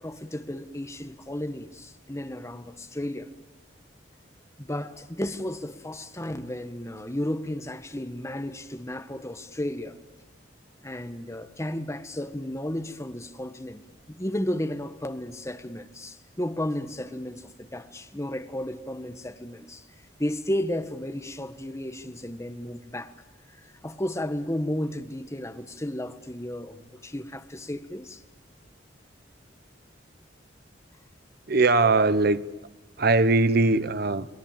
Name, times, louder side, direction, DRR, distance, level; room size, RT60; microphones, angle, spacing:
voice 1, 0.0-3.3 4.6-10.0 10.8-19.9 20.2-23.1 23.5-28.2, left 1 dB, 15° left, 1.4 m, -33 dB
voice 2, 31.5-32.4 33.0-34.3, right 3 dB, 55° right, 1.1 m, -21 dB
29.5 x 20.0 x 9.0 m
head